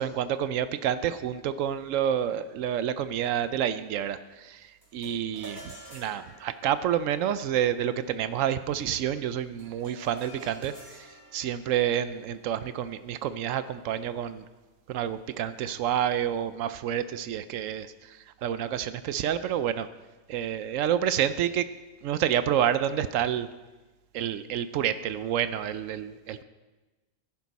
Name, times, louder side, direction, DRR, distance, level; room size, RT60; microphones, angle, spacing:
voice 1, 0.0-14.4 14.9-19.9 20.3-21.7 22.0-23.5 24.1-26.4, right 10 dB, 85° right, 13 dB, 1.0 m, -29 dB
sound 1, 4.8-14.3, right 1 dB, 15° right, 3.3 m, -51 dB
14.5 x 10.5 x 4.1 m, 1.2 s
omnidirectional pair, 1.3 m